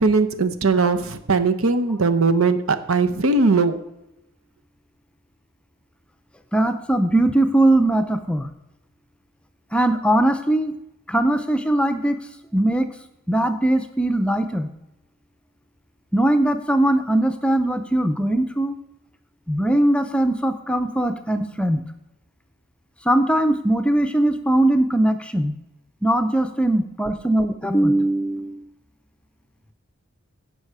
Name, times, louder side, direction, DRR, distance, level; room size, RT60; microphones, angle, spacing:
voice 1, 0.0-3.8, right 4 dB, 75° right, 10 dB, 0.9 m, -19 dB
voice 2, 6.5-8.5 9.7-10.7 11.1-12.2 12.5-12.9 13.3-14.7 16.1-18.7 19.5-21.8 23.1-25.5 26.0-28.6, right 1 dB, 5° left, 8 dB, 0.5 m, -20 dB
16.5 x 5.6 x 4.8 m, 0.90 s
head